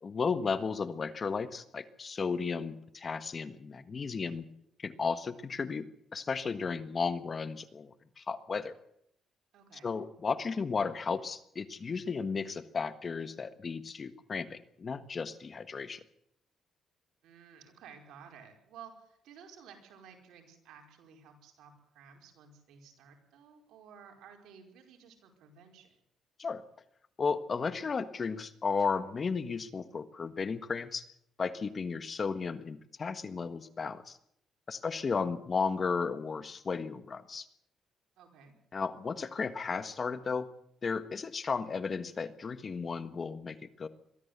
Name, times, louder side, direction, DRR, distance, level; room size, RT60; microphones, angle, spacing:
voice 1, 0.0-4.4 4.8-5.9 6.1-8.7 9.8-16.0 26.4-26.6 27.2-31.0 31.4-34.2 34.7-37.5 38.7-40.5 40.8-43.9, left 5 dB, 40° left, 12 dB, 1.4 m, -34 dB
voice 2, 9.5-9.9 17.2-25.9 38.2-38.5, right 7 dB, 80° right, 2 dB, 5.1 m, -54 dB
23.0 x 14.0 x 8.3 m, 0.72 s
cardioid pair, 90°, 0 cm